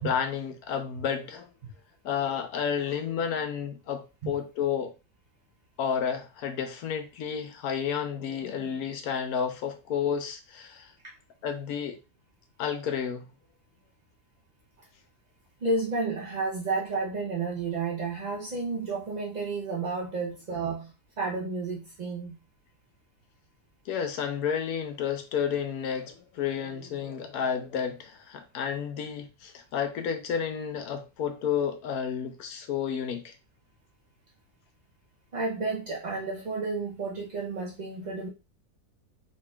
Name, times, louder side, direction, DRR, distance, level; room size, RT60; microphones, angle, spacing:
voice 1, 0.0-1.5 2.0-4.9 5.8-10.9 11.4-12.0 12.6-13.3 23.9-33.3, left 7 dB, 75° left, 1.1 m, -31 dB
voice 2, 15.6-22.4 35.3-38.3, right 3 dB, 60° right, 0.4 m, -31 dB
3.7 x 3.6 x 2.2 m
omnidirectional pair, 1.6 m